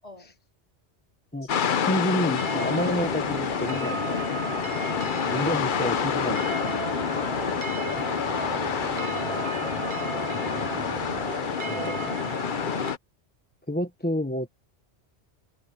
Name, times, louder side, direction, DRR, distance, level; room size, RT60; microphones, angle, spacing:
voice 1, 0.0-0.4 1.4-1.5 5.3-5.5 5.8-6.0 6.3-10.4 11.4-12.7, equal, 35° left, 4.0 m, -42 dB
voice 2, 1.3-4.2 5.3-6.4 11.7-12.2 13.7-14.5, equal, 10° left, 1.0 m, -29 dB
sound 1, 1.5-13.0, left 7 dB, 50° left, 0.8 m, -28 dB
sound 2, 2.4-12.9, right 6 dB, 45° right, 0.4 m, -35 dB
sound 3, 2.7-8.2, right 1 dB, 65° right, 7.9 m, -55 dB
omnidirectional pair, 1.2 m